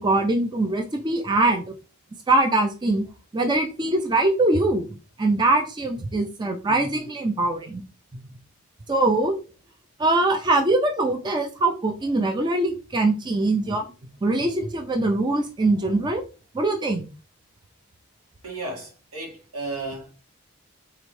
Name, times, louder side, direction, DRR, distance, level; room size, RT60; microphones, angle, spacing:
voice 1, 0.0-1.6 2.3-3.1 3.3-4.9 5.2-7.8 8.9-9.4 10.0-13.8 14.2-16.2 16.5-17.1, right 2 dB, 20° right, 0.4 m, -22 dB
voice 2, 18.4-20.1, right 2 dB, 85° right, 1.6 m, -34 dB
3.7 x 3.1 x 3.1 m
head